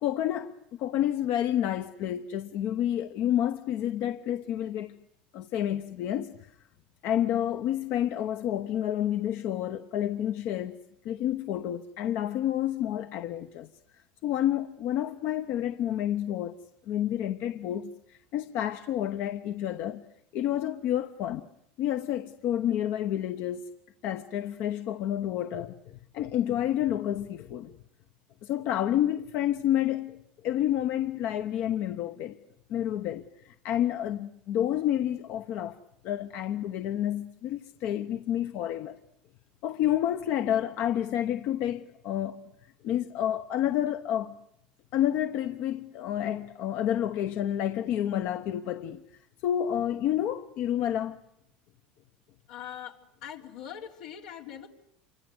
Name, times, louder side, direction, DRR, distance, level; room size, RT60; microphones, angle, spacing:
voice 1, 0.0-5.0 5.3-6.5 7.0-10.8 11.0-16.5 16.9-20.0 20.3-21.4 21.8-23.7 24.0-27.7 28.4-30.2 30.4-32.4 32.7-35.8 36.0-39.0 39.6-44.4 44.9-49.0 49.4-51.2, left 11 dB, 60° left, 1.0 m, -29 dB
voice 2, 52.5-54.7, left 9 dB, 90° left, 3.8 m, -42 dB
28.0 x 25.0 x 8.0 m
supercardioid pair, 110°, 4 cm